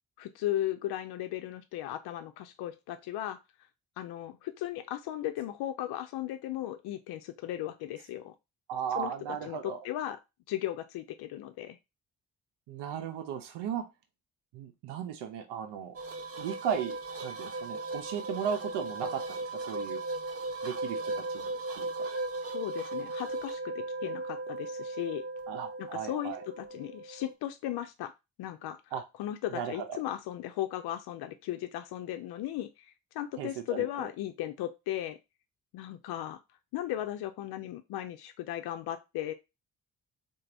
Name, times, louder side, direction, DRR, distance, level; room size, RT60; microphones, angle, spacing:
voice 1, 0.2-3.4 4.0-8.3 8.9-10.2 10.5-11.8 22.5-25.2 25.8-28.1 28.4-28.8 29.2-35.2 35.7-36.4 36.7-39.3, left 13 dB, 65° left, 0.5 m, -36 dB
voice 2, 8.7-9.8 12.7-13.9 14.5-16.0 16.4-17.0 17.2-20.0 20.6-22.1 25.5-26.4 28.9-29.0 29.5-30.0 33.4-34.1, right 8 dB, 70° right, 0.7 m, -36 dB
sound 1, 15.9-27.3, right 2 dB, 35° right, 0.7 m, -37 dB
3.2 x 2.1 x 3.8 m
hypercardioid pair, 40°, 43 cm